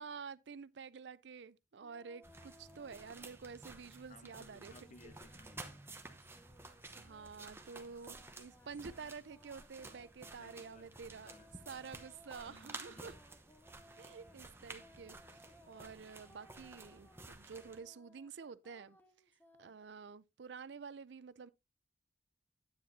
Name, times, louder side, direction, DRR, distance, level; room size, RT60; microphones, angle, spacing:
voice 1, 0.0-4.7 6.9-11.3 11.7-13.1 14.0-19.0 19.6-21.5, right 5 dB, 70° right, 0.5 m, -50 dB
sound 1, 1.8-3.9 4.1-19.8, left 1 dB, 10° left, 1.1 m, -64 dB
sound 2, 2.2-17.8, right 3 dB, 15° right, 0.9 m, -53 dB
voice 2, 4.1-5.9 10.4-11.5 12.4-13.2, left 2 dB, 40° left, 0.8 m, -60 dB
10.0 x 8.9 x 2.7 m
head